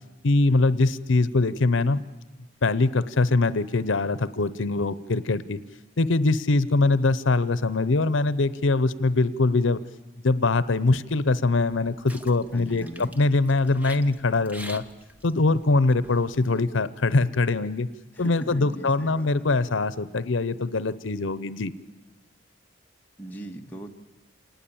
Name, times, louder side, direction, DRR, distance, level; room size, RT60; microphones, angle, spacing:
voice 1, 0.2-2.0 2.6-5.6 6.0-9.8 10.2-14.8 15.2-17.9 18.2-21.7, left 3 dB, 80° left, 16 dB, 0.8 m, -23 dB
sound 1, 12.1-16.6, equal, 10° right, 1.0 m, -46 dB
voice 2, 12.5-13.1 18.1-19.3 23.2-23.9, right 1 dB, 10° left, 0 dB, 1.7 m, -39 dB
27.0 x 19.5 x 8.6 m, 1.1 s
head